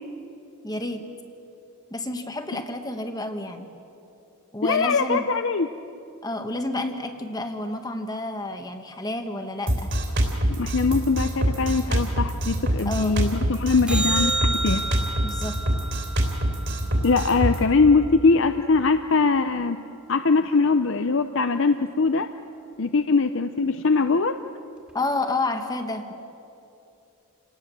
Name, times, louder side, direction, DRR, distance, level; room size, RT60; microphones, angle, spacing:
voice 1, 0.6-1.0 1.9-3.7 4.5-5.3 6.2-9.9 12.8-13.2 15.2-15.6 24.9-26.1, left 2 dB, 15° left, 6 dB, 1.4 m, -30 dB
voice 2, 4.6-5.7 10.6-14.8 17.0-19.8 20.1-22.3 22.8-24.4, left 4 dB, 55° left, 9 dB, 0.7 m, -21 dB
Drum kit, 9.7-17.6, right 1 dB, 55° right, 3.4 m, -25 dB
sound 1, 13.9-18.3 24.9-25.0, right 2 dB, 5° right, 2.2 m, -31 dB
28.5 x 19.0 x 7.6 m, 2.8 s
head